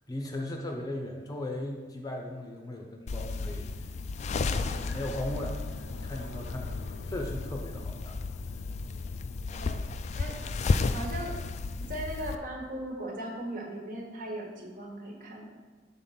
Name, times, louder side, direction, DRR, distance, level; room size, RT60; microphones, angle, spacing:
voice 1, 0.1-3.9 4.7-5.6 5.9-8.2, left 1 dB, 20° left, 1 dB, 0.7 m, -37 dB
sound 1, 2.8-11.3, left 3 dB, 80° left, 0.6 m, -51 dB
sound 2, 3.1-12.4, left 3 dB, 40° left, 0.3 m, -33 dB
voice 2, 10.9-11.4 11.9-15.6, right 1 dB, 50° right, 0 dB, 1.3 m, -38 dB
6.9 x 4.0 x 5.7 m, 1.4 s
head